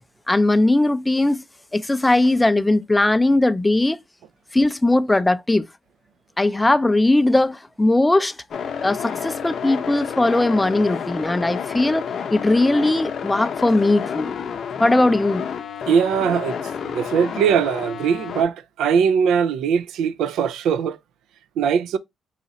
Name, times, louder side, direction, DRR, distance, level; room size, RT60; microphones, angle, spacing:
voice 1, 0.3-1.4 1.7-4.0 4.5-5.7 6.4-8.4 8.8-12.0 12.3-14.3 14.8-15.5, left 2 dB, 15° left, 0.3 m, -19 dB
sound 1, 8.5-18.4, left 7 dB, 60° left, 0.6 m, -30 dB
voice 2, 15.9-16.6 16.8-21.0 21.6-22.0, right 7 dB, 85° right, 0.3 m, -20 dB
4.1 x 2.4 x 3.8 m
cardioid pair, 90°, 0 cm